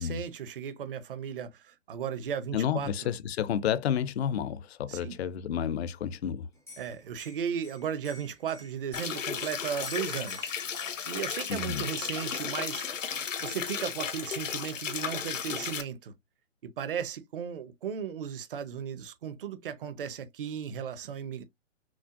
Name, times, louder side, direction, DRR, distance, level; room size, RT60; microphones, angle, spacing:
voice 1, 0.0-3.1 4.9-5.2 6.8-10.5 11.1-12.9 13.4-16.1 16.6-21.4, right 8 dB, 45° right, 0.7 m, -36 dB
voice 2, 2.5-6.5 11.5-11.9, left 9 dB, 55° left, 0.5 m, -30 dB
Liquid, 6.5-11.8 12.3-12.8 13.1-13.7 14.9-15.0 15.2-15.9, left 2 dB, 5° right, 0.3 m, -51 dB
sound 1, 8.9-15.8, left 7 dB, 80° left, 0.8 m, -34 dB
6.0 x 2.1 x 2.4 m
hypercardioid pair, 135°, 37 cm